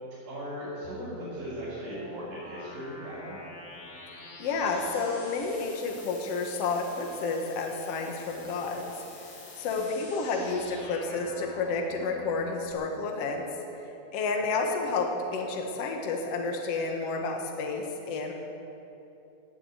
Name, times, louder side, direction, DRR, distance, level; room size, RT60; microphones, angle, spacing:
voice 1, 0.2-3.4 9.6-9.9, equal, 85° right, -12 dB, 6.1 m, -38 dB
sound 1, 0.8-12.7, left 2 dB, 80° left, 0.6 m, -46 dB
voice 2, 4.4-8.9 9.6-13.5 14.1-18.3, left 4 dB, 60° left, 2 dB, 2.2 m, -30 dB
17.5 x 7.1 x 9.6 m, 2.9 s
omnidirectional pair, 3.6 m